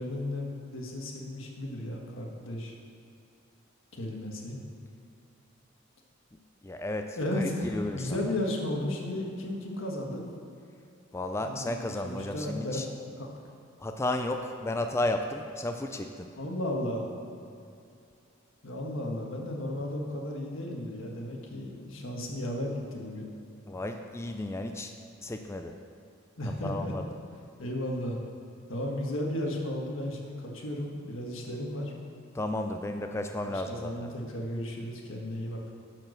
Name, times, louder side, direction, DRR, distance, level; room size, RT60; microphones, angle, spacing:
voice 1, 0.0-2.7 3.9-4.6 7.1-10.3 11.4-12.8 13.2-13.3 16.3-17.2 18.6-23.3 26.4-26.9 27.6-28.2 28.7-31.9 33.4-35.6, left 1 dB, 80° left, 0 dB, 1.5 m, -34 dB
voice 2, 6.6-8.2 11.1-12.9 13.8-16.3 23.7-24.9 25.2-25.7 26.6-27.0 32.3-33.9, left 1 dB, 15° left, 5 dB, 0.3 m, -33 dB
11.5 x 4.6 x 6.5 m, 2.4 s
head